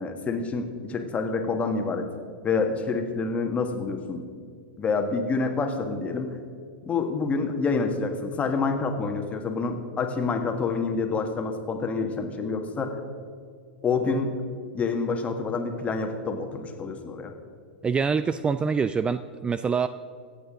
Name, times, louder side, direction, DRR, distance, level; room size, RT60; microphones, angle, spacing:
voice 1, 0.0-2.1 2.4-4.3 4.8-6.3 6.9-13.0 13.8-14.3 14.7-17.3, left 4 dB, 25° left, 4 dB, 1.8 m, -27 dB
voice 2, 17.8-19.9, right 5 dB, 15° right, 13 dB, 0.4 m, -25 dB
25.5 x 8.5 x 3.8 m, 2.1 s
figure-of-eight pair, 95°, 6 cm